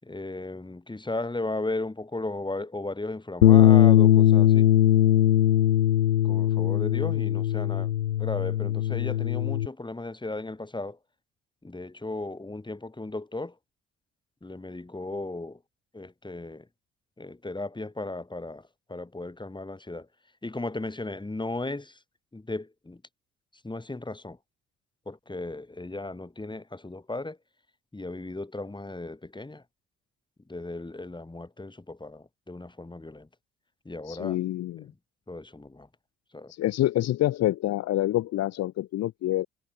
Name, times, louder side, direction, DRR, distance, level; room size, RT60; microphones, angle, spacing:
voice 1, 0.0-4.7 6.2-7.9 8.2-11.0 11.6-13.6 14.4-15.6 15.9-16.7 17.2-20.1 20.4-22.0 22.3-23.0 23.6-24.4 25.1-27.4 27.9-29.6 30.5-33.3 33.8-34.4 35.3-35.9 36.3-36.5, left 2 dB, 10° left, 4.5 m, -36 dB
Bass guitar, 3.4-9.7, left 12 dB, 85° left, 0.5 m, -20 dB
voice 2, 34.1-34.9 36.5-39.5, left 14 dB, 40° left, 0.9 m, -27 dB
figure-of-eight pair, 55°, 39 cm